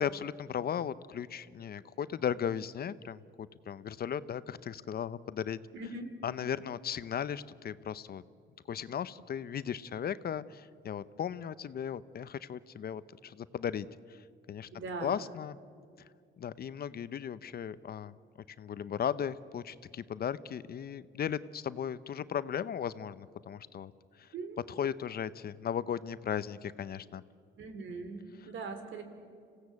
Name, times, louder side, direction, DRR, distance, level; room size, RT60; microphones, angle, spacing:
voice 1, 0.0-5.6 6.2-8.2 8.7-14.7 15.0-15.6 16.4-18.1 18.6-23.9 24.2-24.3 24.7-27.2, left 8 dB, 50° left, 16 dB, 0.7 m, -36 dB
voice 2, 5.7-6.1 14.7-15.1 24.3-24.6 27.6-29.0, right 3 dB, 75° right, 7 dB, 3.2 m, -40 dB
26.0 x 16.5 x 8.4 m, 2.3 s
cardioid pair, 90°, 20 cm